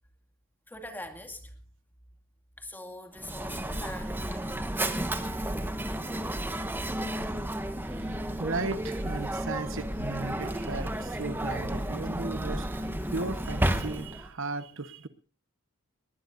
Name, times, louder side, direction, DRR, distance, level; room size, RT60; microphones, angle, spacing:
voice 1, 0.7-1.5 2.6-4.6, left 1 dB, 10° left, 2.3 m, -43 dB
Mechanisms, 3.2-14.3, right 1 dB, 10° right, 1.1 m, -32 dB
voice 2, 7.8-15.1, right 3 dB, 60° right, 1.1 m, -36 dB
20.0 x 20.0 x 2.6 m
head